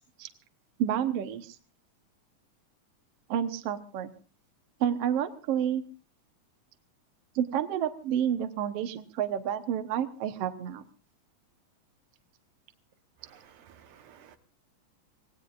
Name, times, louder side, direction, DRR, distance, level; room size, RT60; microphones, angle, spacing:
voice 1, 0.8-1.6 3.3-4.1 4.8-5.8 7.4-10.8, right 9 dB, 60° right, 8 dB, 1.8 m, -29 dB
voice 2, 13.2-14.4, right 9 dB, 80° right, 8 dB, 2.7 m, -55 dB
25.5 x 18.5 x 2.5 m, 0.36 s
omnidirectional pair, 3.6 m